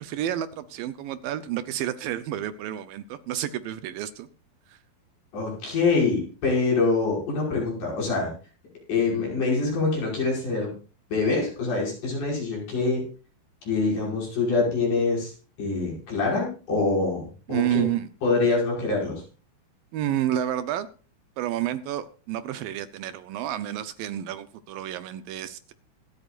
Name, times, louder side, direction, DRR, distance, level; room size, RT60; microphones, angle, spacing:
voice 1, 0.0-4.3 4.7-4.8 9.1-9.2 17.5-18.1 19.9-20.9 21.4-25.7, right 12 dB, 75° right, 12 dB, 2.4 m, -30 dB
voice 2, 5.3-8.3 8.9-10.7 11.1-13.0 13.7-15.3 15.6-17.8 18.2-19.2, left 3 dB, 55° left, -3 dB, 7.1 m, -25 dB
25.5 x 9.0 x 2.5 m, 0.37 s
omnidirectional pair, 4.3 m